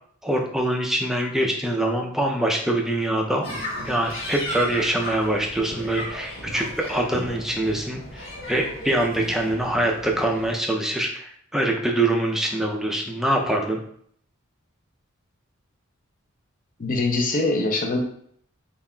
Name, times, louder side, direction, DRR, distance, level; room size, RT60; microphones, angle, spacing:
voice 1, 0.2-3.5 3.9-13.8, right 1 dB, ahead, 1 dB, 0.4 m, -24 dB
sound 1, 3.4-10.5, equal, 90° left, 1.3 m, -35 dB
voice 2, 16.8-18.0, left 2 dB, 40° left, 2 dB, 0.6 m, -23 dB
5.4 x 2.4 x 2.2 m, 0.64 s
head